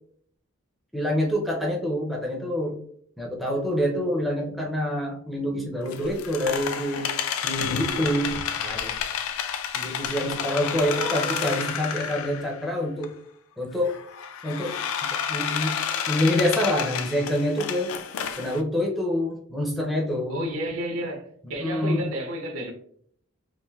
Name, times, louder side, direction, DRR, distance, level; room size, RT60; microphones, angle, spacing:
voice 1, 0.9-2.8 3.2-7.1 7.4-8.9 9.7-13.1 13.6-13.9 14.4-14.8 15.0-15.7 16.1-17.9 18.4-20.5 21.6-22.0, left 1 dB, ahead, 0.4 m, -26 dB
sound 1, 5.9-12.6 13.0-13.1 13.9-18.6, left 8 dB, 80° left, 0.3 m, -30 dB
voice 2, 10.8-11.8 20.3-22.7, right 1 dB, 80° right, 0.6 m, -32 dB
3.1 x 2.5 x 2.2 m
head